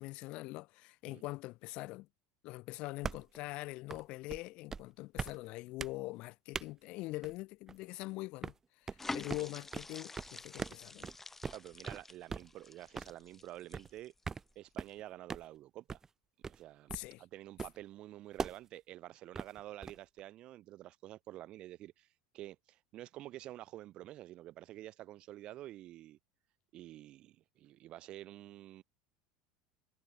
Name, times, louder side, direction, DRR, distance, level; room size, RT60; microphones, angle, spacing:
voice 1, 0.0-2.1 2.4-11.1 16.9-17.2, left 20 dB, 60° left, 2.8 m, -43 dB
sound 1, 3.0-3.4 3.9-4.0 4.3-4.4 4.7-4.9 5.2-5.4 5.8-5.9 6.5-6.7 7.2-7.3 7.7-8.0 8.4-8.5 8.9-9.0 9.3-9.4 9.7-9.9 10.2-10.3 10.6-10.8 11.0-11.2 11.4-11.6 11.9-12.0 12.3-12.5 13.0-13.1 13.7-13.9 14.2-14.4 14.8-15.0 15.3-15.4 15.9-16.1 16.4-16.6 16.9-17.1 17.6-17.8 18.4-18.6 19.3-20.2, right 5 dB, 20° right, 1.9 m, -40 dB
sound 2, 9.0-14.4 14.8-14.9, left 3 dB, 15° left, 6.3 m, -47 dB
voice 2, 11.2-14.1 14.5-16.0 16.5-22.1 22.3-26.2 26.7-28.8, right 14 dB, 50° right, 7.0 m, -49 dB
hypercardioid pair, 95°, 2 cm